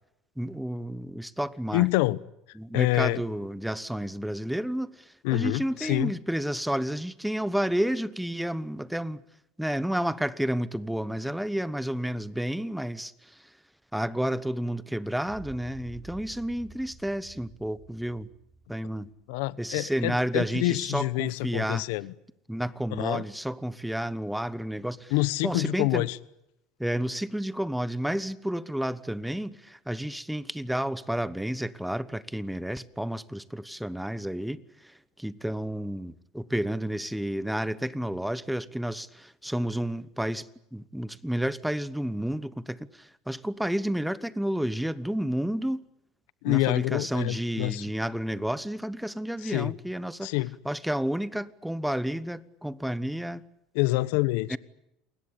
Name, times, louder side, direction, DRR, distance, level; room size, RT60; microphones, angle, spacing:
voice 1, 0.4-1.9 2.6-9.2 9.6-13.5 13.9-18.3 18.7-19.1 19.6-21.8 22.5-25.1 25.4-26.1 26.8-45.8 46.5-50.3 50.6-53.4 54.5-54.6, right 1 dB, ahead, 1.0 m, -31 dB
voice 2, 1.7-2.2 2.7-3.2 5.2-6.1 19.3-22.1 23.0-23.2 25.1-26.2 46.4-47.8 49.4-49.7 50.2-50.5 53.7-54.6, left 20 dB, 75° left, 1.1 m, -27 dB
sound 1, 15.3-19.6, right 3 dB, 20° right, 4.1 m, -49 dB
29.0 x 21.0 x 8.6 m
cardioid pair, 140°, 0 cm